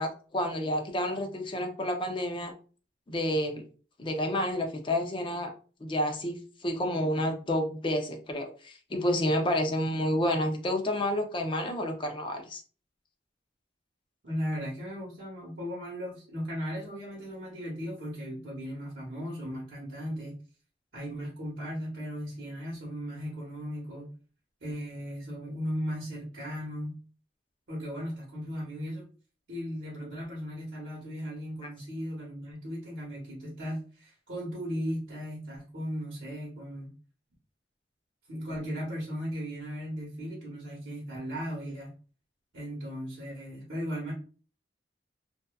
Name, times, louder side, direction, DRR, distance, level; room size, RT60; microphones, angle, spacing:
voice 1, 0.0-2.5 3.1-3.6 4.0-5.5 5.8-12.6, left 1 dB, 30° left, 4 dB, 0.5 m, -29 dB
voice 2, 14.2-20.4 20.9-24.1 24.6-27.0 27.7-29.1 29.5-36.9 38.3-41.9 42.5-44.1, equal, 80° right, -6 dB, 0.9 m, -37 dB
2.6 x 2.3 x 2.2 m, 0.39 s
head